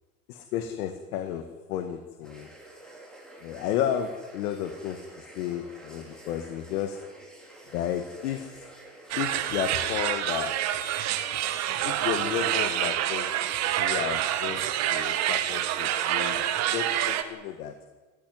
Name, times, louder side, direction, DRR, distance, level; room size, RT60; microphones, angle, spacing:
voice 1, 0.3-2.5 3.4-7.0 7.7-8.7 9.2-10.5 11.8-13.3 13.8-16.4 16.7-17.7, left 10 dB, 90° left, 7 dB, 2.1 m, -32 dB
sound 1, 2.2-16.5, right 1 dB, ahead, 4.7 m, -49 dB
sound 2, 9.1-17.2, right 12 dB, 35° right, 1.6 m, -27 dB
28.0 x 14.5 x 9.6 m, 1.3 s
cardioid pair, 170°, 43 cm